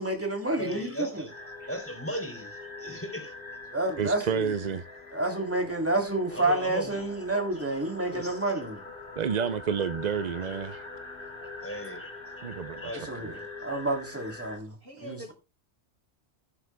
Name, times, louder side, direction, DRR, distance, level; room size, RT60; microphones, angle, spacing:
voice 1, 0.0-1.3 3.7-4.5 5.1-8.8 13.0-13.3 13.6-14.7 15.0-15.3, right 2 dB, 10° right, 3.1 m, -29 dB
voice 2, 0.5-3.3 6.3-7.2 7.5-7.7 8.1-8.4 10.0-10.5 11.6-13.8, equal, 10° left, 3.5 m, -39 dB
sound 1, 1.3-14.6, left 3 dB, 45° left, 2.7 m, -44 dB
voice 3, 4.0-4.8 9.2-10.8 12.4-13.1, right 7 dB, 50° right, 0.6 m, -30 dB
voice 4, 14.8-15.3, equal, 65° right, 6.0 m, -43 dB
19.5 x 8.0 x 2.2 m
omnidirectional pair, 1.2 m